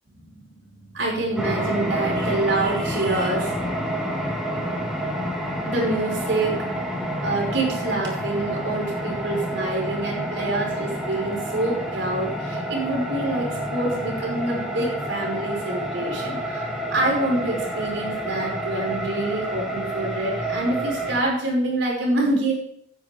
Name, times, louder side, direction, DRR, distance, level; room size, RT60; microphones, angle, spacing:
voice 1, 0.2-3.5 5.6-6.5 7.2-22.5, right 2 dB, 80° right, -2 dB, 5.1 m, -26 dB
sound 1, 1.4-21.2, right 1 dB, ahead, 2.2 m, -29 dB
15.0 x 10.0 x 3.7 m, 0.67 s
head